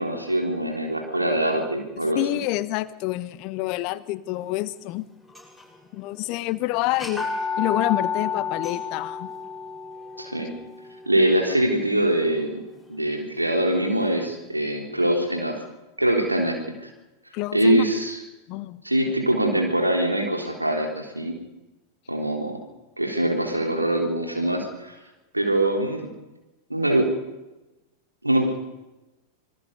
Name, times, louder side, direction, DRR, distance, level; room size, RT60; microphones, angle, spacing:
voice 1, 0.0-2.2 10.2-10.5 11.0-12.6 12.9-15.6 16.0-16.9 17.5-18.2 18.8-21.4 22.1-22.6 23.0-25.0 25.3-26.1 26.7-27.1 28.2-28.5, right 1 dB, 85° right, 2 dB, 3.4 m, -23 dB
voice 2, 2.1-5.1 5.9-7.3 7.6-9.3 17.3-17.9 18.5-18.8, left 17 dB, 45° left, 16 dB, 1.1 m, -27 dB
sound 1, 5.3-5.9 6.2-6.3 6.9-12.8, left 5 dB, ahead, 7.2 m, -31 dB
26.5 x 21.5 x 5.5 m, 1.1 s
figure-of-eight pair, 90°, 0 cm